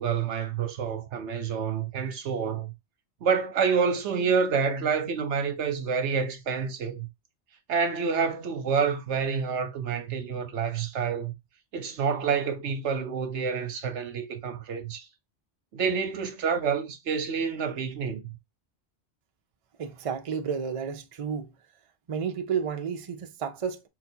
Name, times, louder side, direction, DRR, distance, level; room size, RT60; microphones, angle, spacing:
voice 1, 0.0-2.7 3.2-7.1 7.7-11.3 11.7-15.1 15.7-18.3, right 6 dB, 75° right, 1.1 m, -28 dB
voice 2, 19.8-21.5 22.1-23.9, right 7 dB, 45° right, 0.4 m, -31 dB
4.0 x 2.3 x 4.3 m
omnidirectional pair, 1.2 m